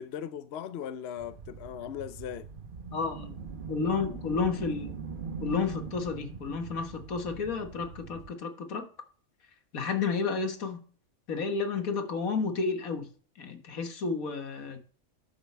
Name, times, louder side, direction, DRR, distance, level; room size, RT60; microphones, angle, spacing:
voice 1, 0.0-2.5, left 9 dB, 60° left, 0.8 m, -38 dB
sound 1, 1.2-8.3, right 5 dB, 40° right, 1.1 m, -41 dB
voice 2, 2.9-3.3 3.7-5.0 5.4-8.9 9.7-10.8 11.3-13.1 13.4-14.8, left 5 dB, 85° left, 1.9 m, -31 dB
12.0 x 7.3 x 3.4 m
omnidirectional pair, 1.4 m